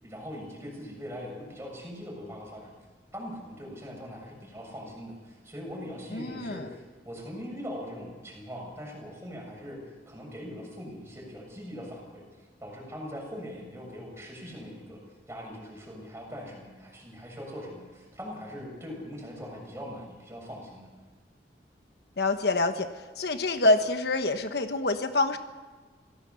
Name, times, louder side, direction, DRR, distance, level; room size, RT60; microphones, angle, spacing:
voice 1, 0.0-2.7 3.1-9.8 10.1-12.2 12.6-15.0 15.3-20.9, equal, 15° right, 0 dB, 6.9 m, -41 dB
voice 2, 6.1-6.7 22.2-22.9 23.2-25.4, left 2 dB, 65° left, 8 dB, 1.2 m, -26 dB
26.5 x 17.0 x 7.1 m, 1.4 s
head